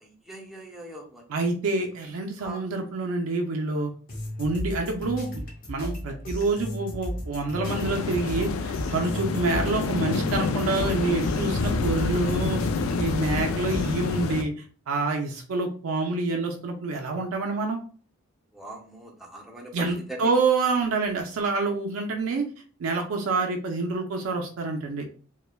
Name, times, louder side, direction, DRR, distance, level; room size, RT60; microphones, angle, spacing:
voice 1, 0.0-1.2 2.4-2.6 18.5-20.3, right 1 dB, ahead, -2 dB, 0.5 m, -41 dB
voice 2, 1.3-3.9 4.4-5.4 5.7-12.6 13.0-14.5 14.9-17.8 19.7-22.5 22.8-25.1, right 3 dB, 90° right, 3 dB, 0.4 m, -27 dB
sound 1, 4.1-14.0, equal, 45° left, 0.7 m, -35 dB
sound 2, 7.6-14.4, left 4 dB, 80° left, 0.3 m, -28 dB
3.2 x 2.0 x 2.2 m, 0.40 s
head